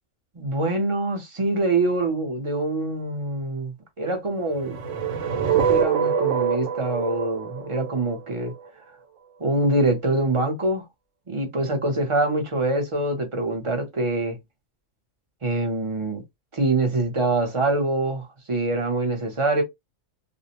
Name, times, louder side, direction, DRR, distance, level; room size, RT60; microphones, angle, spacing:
voice 1, 0.3-4.8 5.4-8.5 9.4-10.8 11.3-14.4 15.4-16.2 16.5-19.6, right 2 dB, 35° right, 0.5 m, -25 dB
sound 1, 4.6-8.7, right 7 dB, 80° right, 1.0 m, -25 dB
2.5 x 2.0 x 2.8 m
omnidirectional pair, 1.3 m